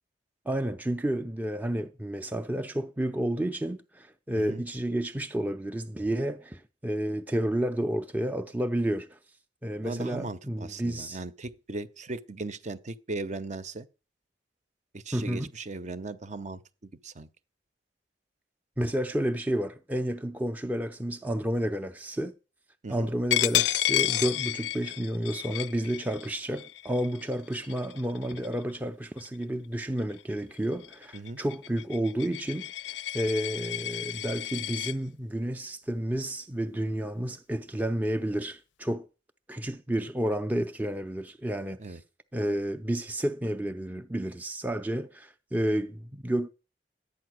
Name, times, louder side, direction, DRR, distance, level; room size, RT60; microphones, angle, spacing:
voice 1, 0.5-9.2 9.6-11.2 15.1-15.5 18.8-22.3 22.9-32.7 33.1-39.1 39.5-42.0 42.3-46.5, right 1 dB, 10° right, 0.5 m, -31 dB
voice 2, 9.8-13.9 14.9-17.3 22.8-23.1 31.1-31.4 41.8-42.0, right 2 dB, 40° right, 0.8 m, -38 dB
Coin (dropping), 23.3-28.7 29.2-29.4 29.8-34.9, left 14 dB, 85° left, 0.5 m, -31 dB
11.5 x 8.7 x 6.2 m
head